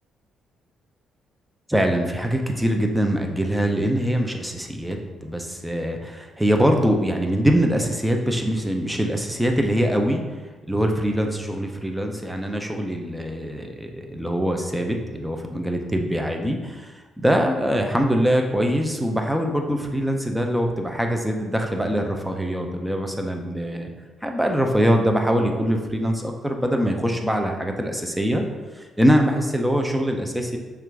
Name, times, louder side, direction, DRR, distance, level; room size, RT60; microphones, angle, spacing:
voice 1, 1.7-10.2 10.7-16.9 17.2-23.9 24.2-28.4 28.7-30.6, equal, 5° right, 3 dB, 0.6 m, -23 dB
6.0 x 2.5 x 3.5 m, 1.3 s
cardioid pair, 90°, 0 cm